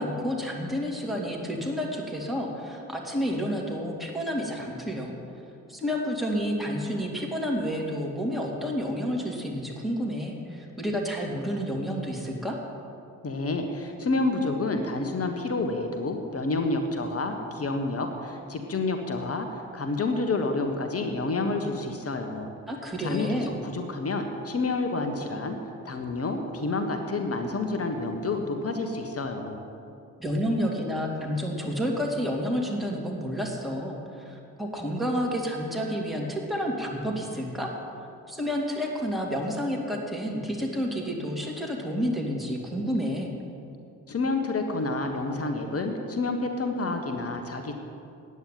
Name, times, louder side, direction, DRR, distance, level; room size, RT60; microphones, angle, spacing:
voice 1, 0.0-5.1 5.7-12.6 22.7-23.6 30.2-37.7 38.3-43.3, equal, ahead, -1 dB, 2.5 m, -30 dB
voice 2, 13.2-19.5 19.7-22.5 23.0-25.6 25.8-29.6 44.1-47.7, left 3 dB, 35° left, 5 dB, 1.4 m, -29 dB
9.6 x 9.0 x 9.2 m, 2.6 s
figure-of-eight pair, 40°, 43 cm